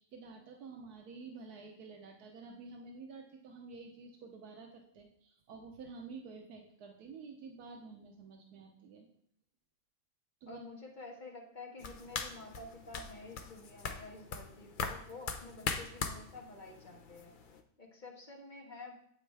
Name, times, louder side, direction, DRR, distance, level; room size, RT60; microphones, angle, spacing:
voice 1, 0.0-9.1 10.4-10.6, right 4 dB, 85° right, 1 dB, 1.4 m, -50 dB
voice 2, 10.5-17.3 17.8-18.9, left 2 dB, 30° left, 0 dB, 1.5 m, -50 dB
sound 1, 11.8-17.6, left 5 dB, 50° left, 0.6 m, -41 dB
8.8 x 8.3 x 3.3 m, 0.68 s
omnidirectional pair, 1.6 m